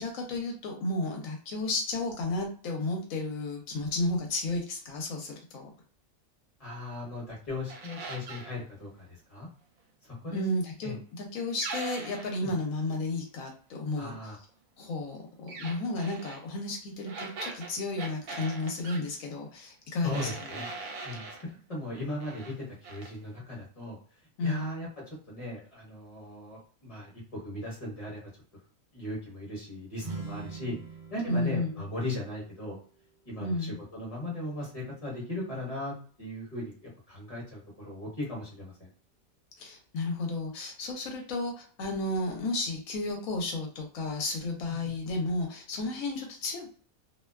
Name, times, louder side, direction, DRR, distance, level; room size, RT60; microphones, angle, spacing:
voice 1, 0.0-5.7 10.3-14.4 14.8-20.6 24.4-24.7 31.3-31.7 33.4-33.8 39.6-46.7, left 2 dB, 80° left, 2 dB, 1.0 m, -33 dB
voice 2, 6.6-9.5 10.2-10.4 10.8-11.0 12.4-12.5 14.0-14.4 20.0-20.7 21.0-24.0 24.4-24.9 25.3-28.2 28.9-30.8 31.1-32.8 33.2-36.7 37.1-38.9 44.7-44.9, left 1 dB, 30° left, -4 dB, 1.1 m, -38 dB
sound 1, 7.7-8.5 11.6-12.4 15.5-16.4 17.1-19.0 20.1-21.4 21.9-22.5 22.8-23.1, right 3 dB, 80° right, 1.0 m, -41 dB
sound 2, 29.9-33.7, right 4 dB, 45° right, 0.7 m, -44 dB
2.5 x 2.1 x 2.2 m, 0.43 s
omnidirectional pair, 1.4 m